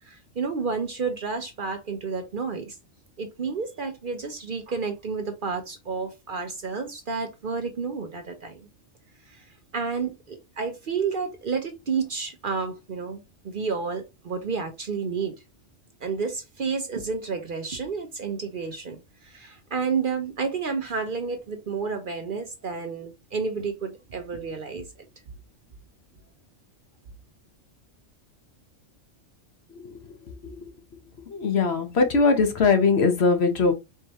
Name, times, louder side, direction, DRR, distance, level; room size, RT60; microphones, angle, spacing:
voice 1, 0.0-2.8 3.2-8.7 9.3-9.4 9.7-15.4 16.0-24.9, right 5 dB, 50° right, 0.8 m, -30 dB
voice 2, 31.3-33.7, left 4 dB, 60° left, 1.1 m, -20 dB
4.6 x 3.1 x 2.9 m
omnidirectional pair, 1.3 m